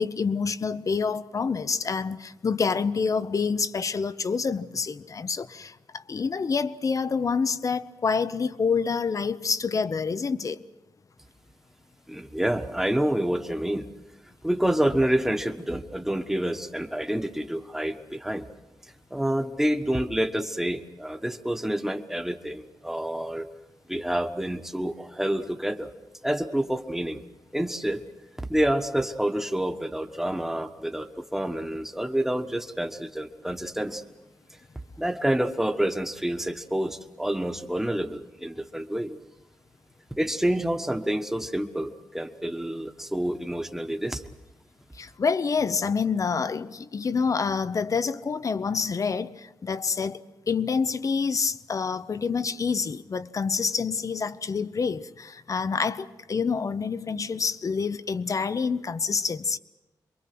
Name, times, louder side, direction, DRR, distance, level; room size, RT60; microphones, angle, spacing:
voice 1, 0.0-10.6 45.0-50.2 50.5-59.6, left 5 dB, 50° left, 0.8 m, -27 dB
voice 2, 12.1-13.9 14.4-18.5 19.1-23.5 23.9-25.9 26.2-27.2 27.5-28.0 28.4-34.0 35.0-39.2 40.2-44.2, right 1 dB, 5° right, 1.4 m, -28 dB
27.0 x 23.0 x 6.1 m
wide cardioid pair, 95°, 7 cm